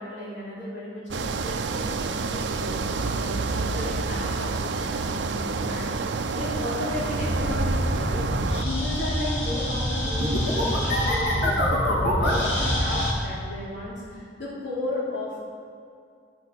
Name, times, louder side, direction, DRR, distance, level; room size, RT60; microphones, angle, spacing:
voice 1, 0.0-15.4, left 2 dB, 70° left, -8 dB, 3.4 m, -35 dB
sound 1, 1.1-8.7, right 3 dB, 85° right, 0.6 m, -28 dB
sound 2, 6.9-13.1, equal, 85° left, 2.9 m, -25 dB
11.5 x 6.2 x 7.7 m, 2.3 s
head